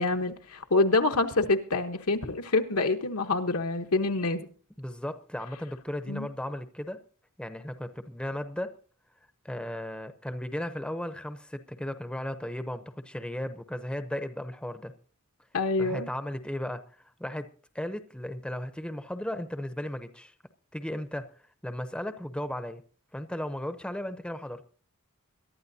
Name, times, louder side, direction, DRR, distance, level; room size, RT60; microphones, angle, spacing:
voice 1, 0.0-4.5 6.1-6.3 15.5-16.1, left 3 dB, 80° left, 1.2 m, -26 dB
voice 2, 4.8-7.0 7.4-8.8 9.4-14.9 15.8-16.8 17.2-17.5 17.7-20.3 20.7-21.3 21.6-22.8 23.1-24.6, left 1 dB, 5° left, 0.7 m, -35 dB
22.5 x 11.5 x 2.7 m
head